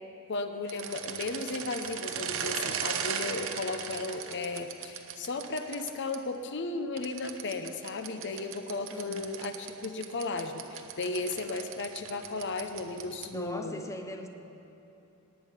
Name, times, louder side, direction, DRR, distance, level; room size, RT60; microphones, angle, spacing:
voice 1, 0.3-13.8, left 3 dB, 55° left, 8 dB, 0.8 m, -35 dB
sound 1, 0.7-6.2 7.0-13.4, right 7 dB, 65° right, 0.8 m, -38 dB
voice 2, 8.9-9.3 13.2-14.3, left 1 dB, 15° left, 5 dB, 0.7 m, -40 dB
19.0 x 8.6 x 5.6 m, 2.9 s
head